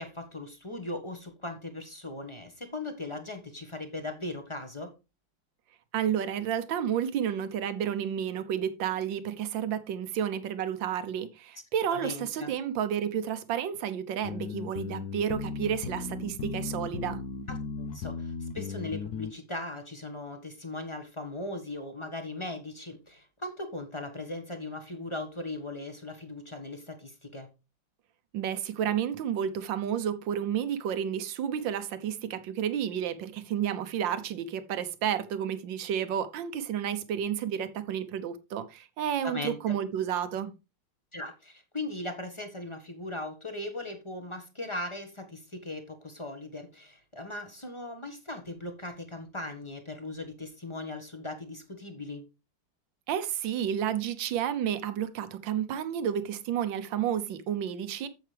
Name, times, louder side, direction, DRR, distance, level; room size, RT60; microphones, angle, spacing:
voice 1, 0.0-4.9 11.9-12.5 17.5-27.5 39.2-39.7 41.1-52.2, left 2 dB, 20° left, 1.1 m, -39 dB
voice 2, 5.9-17.2 28.3-40.5 53.1-58.1, right 9 dB, 70° right, 1.5 m, -31 dB
sound 1, 14.2-19.3, left 5 dB, 60° left, 1.2 m, -36 dB
9.2 x 7.7 x 3.4 m
omnidirectional pair, 2.3 m